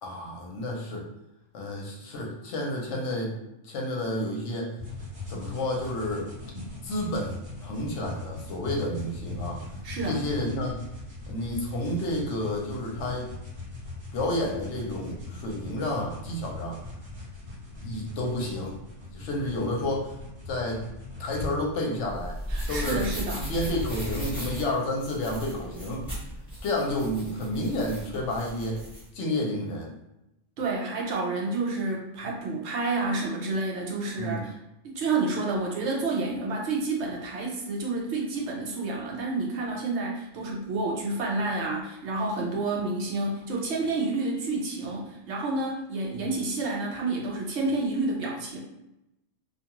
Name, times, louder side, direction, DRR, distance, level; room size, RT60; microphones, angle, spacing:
voice 1, 0.0-1.0 1.5-3.4 3.6-4.7 5.3-6.3 6.8-7.3 7.6-9.6 10.0-10.8 11.3-13.3 14.1-16.8 17.7-18.7 19.1-20.1 20.5-20.8 21.2-22.3 22.7-23.0 23.4-26.1 26.6-28.8 29.1-29.9 34.2-34.4 46.1-46.2, left 1 dB, 70° left, -1 dB, 0.9 m, -30 dB
sound 1, 4.8-21.5, left 2 dB, 30° right, 0.9 m, -40 dB
voice 2, 9.8-10.2 22.5-23.4 30.6-34.5 34.8-48.6, right 3 dB, 65° right, -2 dB, 0.8 m, -29 dB
sound 2, 22.0-29.0, equal, ahead, 0.9 m, -36 dB
2.4 x 2.2 x 2.9 m, 0.89 s
omnidirectional pair, 1.3 m